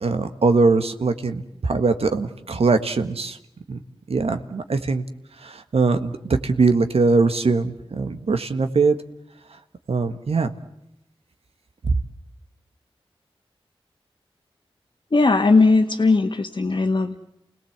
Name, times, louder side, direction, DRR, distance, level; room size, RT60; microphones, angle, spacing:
voice 1, 0.0-3.4 3.7-3.8 4.1-5.0 5.4-9.0 9.9-10.5, right 4 dB, 75° right, 8 dB, 1.6 m, -21 dB
voice 2, 15.1-17.2, left 3 dB, 50° left, 2 dB, 1.6 m, -18 dB
29.0 x 18.5 x 8.1 m, 0.84 s
cardioid pair, 50°, 10 cm